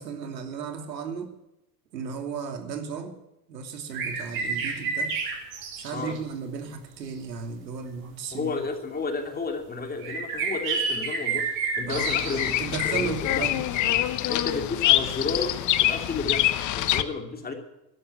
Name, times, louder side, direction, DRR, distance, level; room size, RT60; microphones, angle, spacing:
voice 1, 0.0-1.3 1.9-3.1 3.5-5.1 5.8-8.6 11.9-12.2 12.6-14.0, right 6 dB, 85° right, 6 dB, 2.7 m, -35 dB
sound 1, 3.9-6.2 7.1-7.2 8.1-8.2 10.0-12.5 14.0-14.2 16.8-16.9, right 5 dB, 50° right, 6.1 m, -30 dB
voice 2, 8.3-11.4 11.8-12.5 12.8-13.6 14.3-17.5, left 4 dB, 20° left, 4 dB, 2.9 m, -32 dB
Bird vocalization bird call bird song, 11.9-17.0, left 14 dB, 40° left, 1.1 m, -25 dB
12.5 x 11.5 x 8.3 m, 0.93 s
hypercardioid pair, 105°, 48 cm